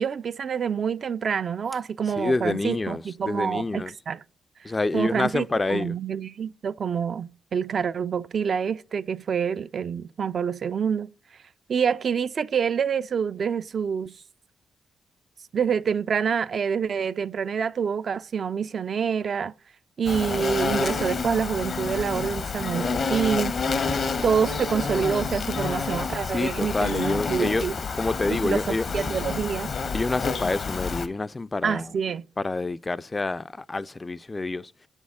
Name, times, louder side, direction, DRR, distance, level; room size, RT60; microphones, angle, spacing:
voice 1, 0.0-4.2 4.9-5.5 5.7-11.1 11.7-14.1 15.5-19.5 20.0-23.6 24.2-27.7 28.3-29.7 31.6-32.2, right 7 dB, 60° right, 0.3 m, -27 dB
voice 2, 2.2-3.9 4.6-6.0 26.3-27.7 27.9-28.9 29.9-31.9 32.4-34.7, left 3 dB, 30° left, 0.3 m, -27 dB
Insect, 20.0-31.1, left 4 dB, 55° left, 0.7 m, -29 dB
7.1 x 6.3 x 3.6 m
supercardioid pair, 50°, 0 cm